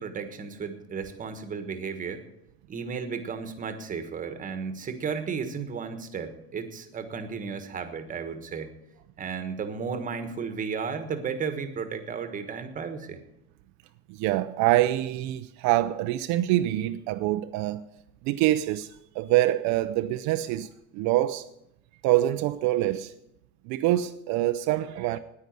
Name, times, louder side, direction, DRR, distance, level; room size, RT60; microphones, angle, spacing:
voice 1, 0.0-2.2 2.7-8.7 9.2-13.2, right 6 dB, 25° right, 1.4 m, -34 dB
voice 2, 14.1-17.9 18.2-21.5 22.0-23.1 23.7-25.2, right 15 dB, 55° right, 0.6 m, -25 dB
9.8 x 9.3 x 9.3 m
cardioid pair, 145°, 33 cm